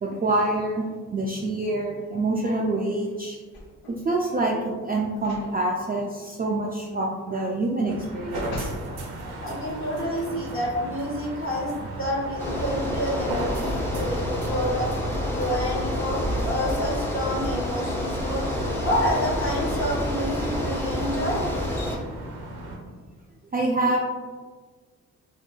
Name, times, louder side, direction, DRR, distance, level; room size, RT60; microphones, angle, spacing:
voice 1, 0.0-3.4 3.9-9.3 23.5-24.0, right 2 dB, 25° right, -2 dB, 0.3 m, -26 dB
sound 1, 3.5-4.1 5.2-5.5 5.9-6.1 7.7-8.9 9.5-9.6, left 1 dB, 75° left, 0.7 m, -39 dB
sound 2, 7.9-22.8, right 1 dB, 65° right, 0.6 m, -37 dB
voice 2, 9.4-11.7 12.0-14.9 15.3-18.4 18.8-21.4, equal, 30° left, -4 dB, 1.1 m, -28 dB
Bicycle, 12.4-22.0, left 1 dB, 5° left, 0.7 m, -28 dB
2.6 x 2.6 x 2.2 m, 1.5 s
hypercardioid pair, 40°, 41 cm